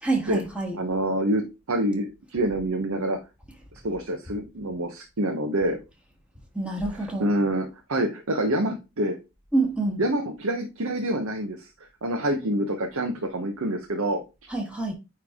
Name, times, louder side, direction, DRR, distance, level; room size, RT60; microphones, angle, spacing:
voice 1, 0.0-0.8 6.5-7.3 9.5-10.0 14.5-14.9, right 2 dB, 5° right, 1.3 m, -26 dB
voice 2, 0.8-3.2 3.8-5.8 7.2-9.2 10.0-11.7 12.0-14.2, right 1 dB, 80° right, 0.9 m, -26 dB
9.1 x 3.3 x 3.5 m
head